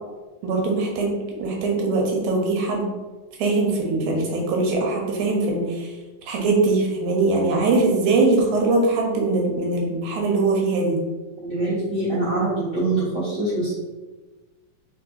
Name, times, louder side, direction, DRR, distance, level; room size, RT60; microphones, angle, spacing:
voice 1, 0.4-1.1 1.4-2.9 3.4-5.9 6.3-11.0, right 3 dB, 85° right, 0 dB, 2.3 m, -21 dB
voice 2, 11.4-13.7, right 2 dB, 45° right, -13 dB, 1.6 m, -24 dB
4.3 x 3.8 x 2.6 m, 1.2 s
omnidirectional pair, 3.5 m